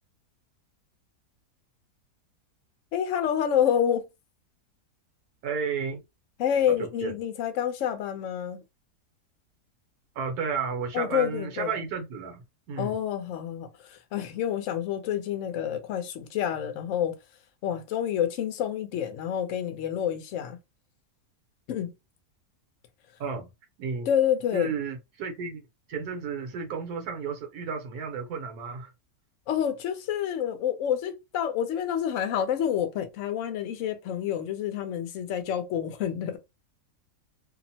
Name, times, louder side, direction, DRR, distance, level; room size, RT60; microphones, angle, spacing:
voice 1, 2.9-4.1 6.4-8.6 10.9-11.7 12.8-17.1 17.6-20.6 21.7-21.9 24.1-24.7 29.5-36.4, left 9 dB, 65° left, 0.8 m, -28 dB
voice 2, 5.4-6.0 6.7-7.2 10.1-13.0 23.2-23.5 23.8-24.1 24.5-25.6 25.9-28.9, right 5 dB, 75° right, 1.2 m, -33 dB
2.9 x 2.0 x 2.7 m
omnidirectional pair, 1.7 m